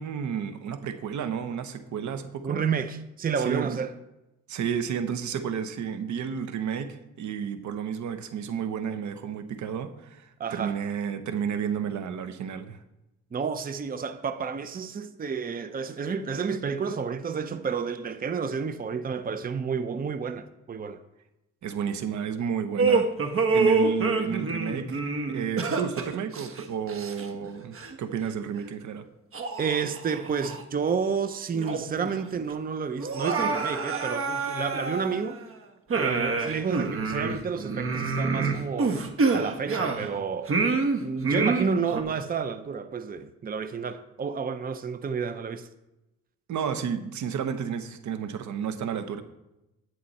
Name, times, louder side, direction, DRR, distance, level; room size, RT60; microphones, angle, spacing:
voice 1, 0.0-2.6 3.4-3.8 4.5-12.8 21.6-23.1 23.5-29.1 46.5-49.2, right 7 dB, 70° right, 1.1 m, -32 dB
voice 2, 2.4-3.9 10.4-10.8 13.3-21.0 29.6-35.4 35.9-39.0 39.3-40.5 41.0-45.7, right 6 dB, 30° right, 0.7 m, -30 dB
sound 1, 22.8-27.5 27.7-28.0 28.6-28.7 29.3-30.6 31.0-31.1 31.5-32.1 32.4-32.5 33.0-35.4 35.9-40.1 40.5-42.0, right 4 dB, 45° right, 1.4 m, -27 dB
11.0 x 9.6 x 4.2 m
cardioid pair, 90°, 30 cm